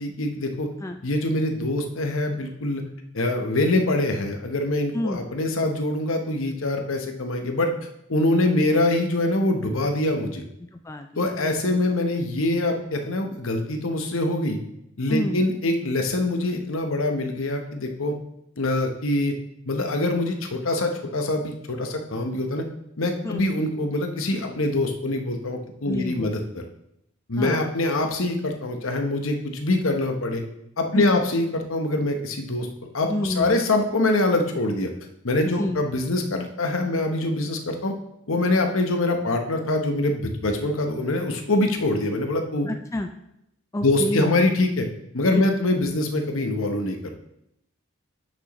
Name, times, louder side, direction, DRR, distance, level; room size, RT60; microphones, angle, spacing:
voice 1, 0.0-0.7 1.0-2.8 3.1-7.7 8.1-10.4 11.2-14.6 15.0-18.1 18.6-19.3 19.7-22.6 23.0-26.4 27.3-30.4 30.8-32.7 32.9-34.9 35.2-37.9 38.3-42.7 43.8-44.9 45.1-47.1, left 2 dB, 70° left, 4 dB, 1.0 m, -24 dB
voice 2, 10.7-11.6 15.1-15.4 23.2-23.5 25.9-26.4 27.4-27.7 30.9-31.2 33.1-33.6 35.6-35.8 42.7-43.1 43.7-44.3 45.8-45.9, left 1 dB, 15° left, 4 dB, 0.3 m, -28 dB
8.8 x 6.2 x 3.1 m, 0.80 s
head